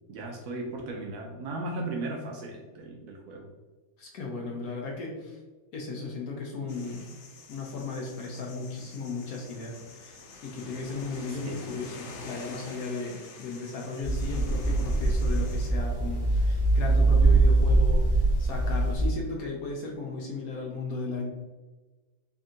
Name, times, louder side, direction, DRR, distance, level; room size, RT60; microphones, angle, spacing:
voice 1, 0.1-3.5 11.3-11.6, right 2 dB, 75° right, 1 dB, 0.9 m, -36 dB
voice 2, 4.0-5.4 5.7-7.1 7.5-21.3, left 3 dB, 65° left, 0 dB, 0.9 m, -36 dB
sound 1, 6.7-15.7, left 3 dB, 85° left, 1.4 m, -47 dB
sound 2, 14.0-19.1, right 2 dB, 40° left, 0.8 m, -23 dB
3.5 x 2.7 x 3.6 m, 1.3 s
omnidirectional pair, 2.1 m